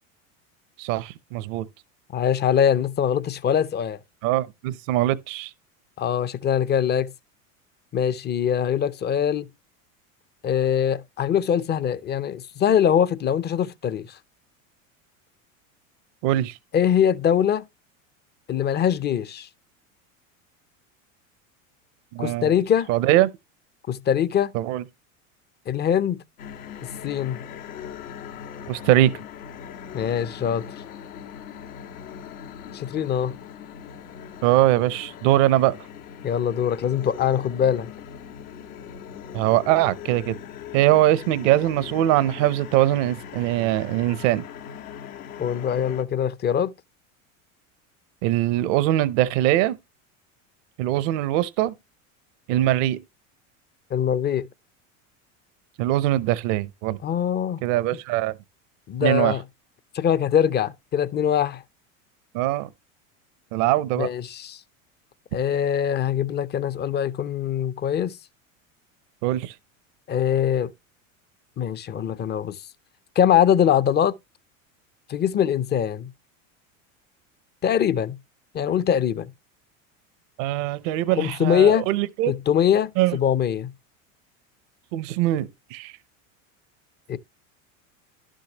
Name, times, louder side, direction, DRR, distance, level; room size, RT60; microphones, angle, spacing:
voice 1, 0.8-1.7 4.2-5.5 16.2-16.6 22.1-22.5 22.9-23.3 24.5-24.8 28.7-29.1 34.4-35.7 39.3-40.4 40.7-44.4 48.2-49.8 50.8-51.7 52.5-53.0 55.8-57.0 57.6-58.3 59.0-59.4 62.3-62.7 63.5-64.1 69.2-69.5 80.4-82.3 83.0-83.2 84.9-85.9, right 14 dB, 65° right, 0.8 m, -22 dB
voice 2, 2.1-4.0 6.0-7.1 7.9-9.5 10.4-14.2 16.7-17.7 18.5-19.5 22.2-22.9 23.9-24.5 25.7-26.2 27.0-27.4 29.9-30.7 32.7-33.4 36.2-37.9 45.4-46.7 53.9-54.5 57.0-57.6 58.9-59.4 59.9-61.6 64.0-64.6 65.3-68.2 70.1-70.7 71.6-72.6 73.2-74.2 75.1-76.1 77.6-78.2 78.5-79.3 81.2-81.9 82.3-83.7 87.1-87.2, left 9 dB, 25° left, 0.6 m, -22 dB
sound 1, 26.4-46.0, left 8 dB, 85° left, 1.7 m, -40 dB
11.5 x 6.3 x 2.9 m
supercardioid pair, 105°, 40 cm